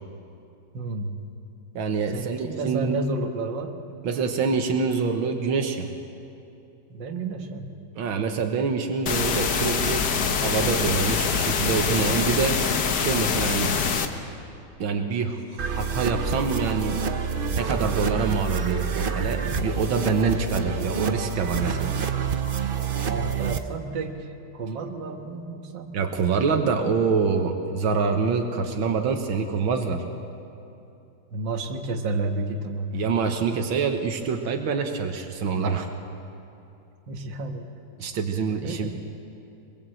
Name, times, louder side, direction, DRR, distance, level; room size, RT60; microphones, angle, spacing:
voice 1, 0.7-1.2 2.1-3.7 6.9-7.7 23.1-24.3 24.5-26.0 31.3-33.1 37.1-37.7 38.6-38.9, right 3 dB, 65° right, 4 dB, 2.2 m, -31 dB
voice 2, 1.8-3.0 4.0-5.9 8.0-12.6 12.9-13.8 14.8-17.0 17.6-22.0 25.9-30.0 32.9-35.9 38.0-38.9, right 5 dB, 85° right, 4 dB, 2.1 m, -26 dB
sound 1, 9.1-14.1, left 6 dB, 60° left, 1.7 m, -24 dB
sound 2, 15.6-23.6, right 6 dB, 45° right, 0.7 m, -28 dB
24.5 x 22.0 x 7.8 m, 2.7 s
omnidirectional pair, 2.1 m